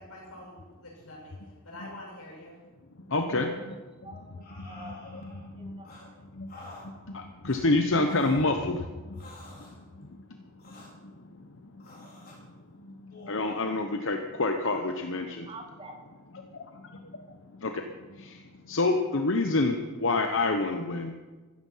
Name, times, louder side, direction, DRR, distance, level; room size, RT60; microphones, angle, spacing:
voice 1, 0.0-1.4 1.6-2.6, left 1 dB, 85° left, 6.6 m, -46 dB
voice 2, 3.1-3.5 4.9-5.0 5.6-5.7 6.4-6.5 7.4-8.8 13.3-15.5 17.6-17.7 18.7-21.1, left 2 dB, 60° left, 1.0 m, -26 dB
voice 3, 4.0-5.0 5.5-6.2 15.5-16.0, right 1 dB, 25° right, 2.3 m, -47 dB
sound 1, 4.4-5.5 5.8-6.1 6.5-6.9 7.4-7.6 8.0-8.4 9.1-9.8 10.6-10.9 11.8-12.4 13.1-13.9 14.6-14.9, left 2 dB, 45° left, 5.1 m, -49 dB
15.0 x 14.0 x 5.7 m
head